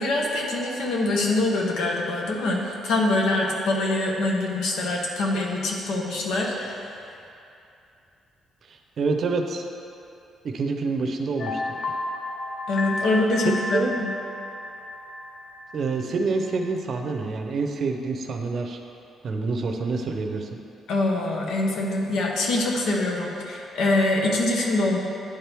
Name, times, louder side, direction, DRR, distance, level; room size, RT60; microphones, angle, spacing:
voice 1, 0.0-7.0 12.7-14.1 20.9-25.0, left 2 dB, 90° left, -1 dB, 1.0 m, -24 dB
voice 2, 8.7-9.6 10.4-11.8 13.4-14.0 15.7-18.8 19.2-20.5, right 3 dB, 50° right, 4 dB, 0.6 m, -27 dB
sound 1, 11.4-16.6 16.9-17.1, left 2 dB, 50° left, 0.5 m, -33 dB
10.0 x 4.5 x 3.4 m, 2.7 s
cardioid pair, 130°, 0 cm